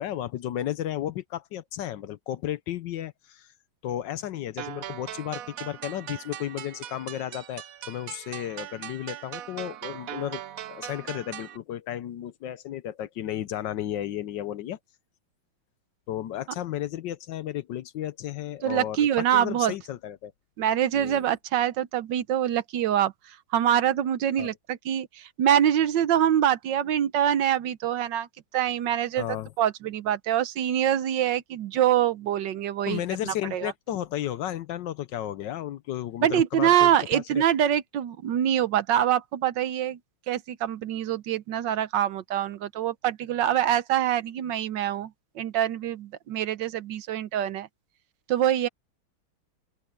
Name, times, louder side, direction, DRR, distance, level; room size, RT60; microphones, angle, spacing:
voice 1, 0.0-3.5 3.8-10.4 10.7-14.8 16.1-20.3 20.9-21.3 24.4-24.5 29.2-29.5 32.9-37.4, left 12 dB, 70° left, 1.2 m, -33 dB
sound 1, 4.6-11.6, right 11 dB, 85° right, 0.7 m, -40 dB
voice 2, 18.6-19.7 20.6-28.3 28.5-29.3 29.6-33.7 36.2-40.0 40.3-45.1 45.4-47.7 48.3-48.7, right 10 dB, 65° right, 1.3 m, -25 dB
open air
omnidirectional pair, 2.3 m